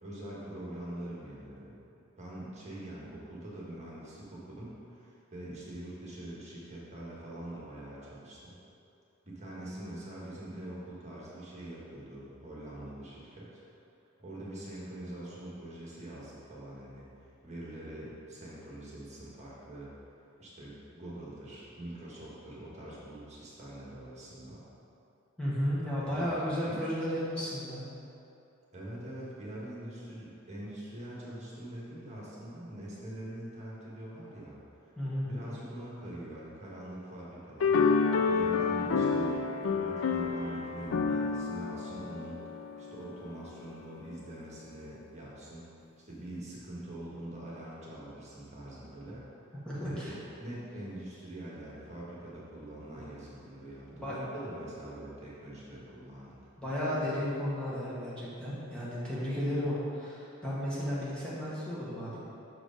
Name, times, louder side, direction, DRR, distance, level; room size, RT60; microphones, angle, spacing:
voice 1, 0.0-1.7 2.2-8.5 9.2-13.6 14.2-17.1 17.4-19.9 20.4-24.6 26.0-26.3 26.6-26.8 28.7-35.0 35.2-37.8 38.3-39.5 39.7-42.4 42.8-45.7 46.0-49.2 49.8-56.5, right 1 dB, 35° right, -6 dB, 1.5 m, -44 dB
voice 2, 25.4-27.9 35.0-35.3 49.7-50.2 52.9-53.0 54.0-54.2 56.6-62.2, equal, 5° left, -10 dB, 1.4 m, -33 dB
sound 1, 37.6-43.2, left 5 dB, 75° left, 0.4 m, -29 dB
6.5 x 4.9 x 5.1 m, 2.7 s
head